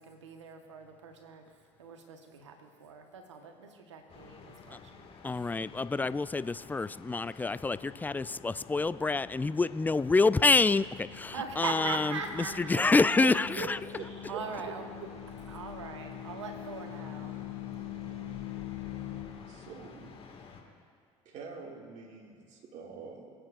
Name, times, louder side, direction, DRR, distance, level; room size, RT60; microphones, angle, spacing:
voice 1, 0.0-1.4 1.8-5.2 11.3-13.3 14.3-14.8 15.5-17.4, right 5 dB, 90° right, 4 dB, 1.2 m, -41 dB
sound 1, 4.1-20.6, left 5 dB, 40° left, 2.0 m, -51 dB
voice 2, 5.2-13.8, left 3 dB, 10° left, 16 dB, 0.3 m, -27 dB
sound 2, 9.8-19.2, left 11 dB, 70° left, 3.1 m, -44 dB
voice 3, 13.2-14.4 19.4-20.2 21.3-23.3, right 5 dB, 55° right, 0 dB, 2.2 m, -44 dB
25.0 x 8.7 x 2.5 m, 2.1 s
hypercardioid pair, 65°, 15 cm